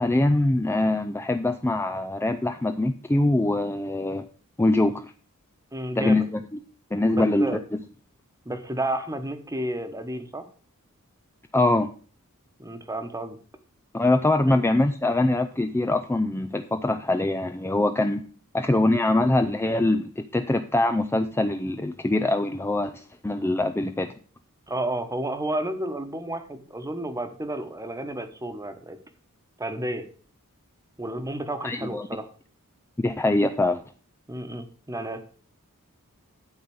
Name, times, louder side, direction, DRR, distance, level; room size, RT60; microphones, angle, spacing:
voice 1, 0.0-4.3 4.6-5.1 6.0-6.2 6.9-7.6 11.5-11.9 13.9-18.2 18.5-24.1 31.6-32.1 33.0-33.8, left 2 dB, 10° left, 7 dB, 0.4 m, -23 dB
voice 2, 5.7-6.2 7.1-7.6 8.4-10.4 12.6-13.4 14.5-14.6 24.7-29.0 29.6-30.0 31.0-32.3 34.3-35.2, right 1 dB, 15° right, 7 dB, 1.1 m, -31 dB
12.0 x 4.0 x 7.0 m, 0.41 s
head